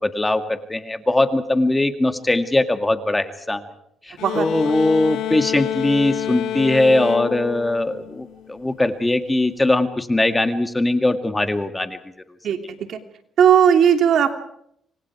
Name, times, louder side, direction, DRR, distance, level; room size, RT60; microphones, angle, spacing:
voice 1, 0.0-3.7 4.1-12.0, left 2 dB, 15° left, 8 dB, 2.2 m, -20 dB
sound 1, 4.2-8.6, left 11 dB, 85° left, 1.6 m, -28 dB
voice 2, 4.2-4.8 12.4-13.0 13.4-14.3, right 8 dB, 70° right, 6 dB, 2.8 m, -17 dB
28.0 x 25.0 x 4.8 m, 0.71 s
cardioid pair, 90°, 0 cm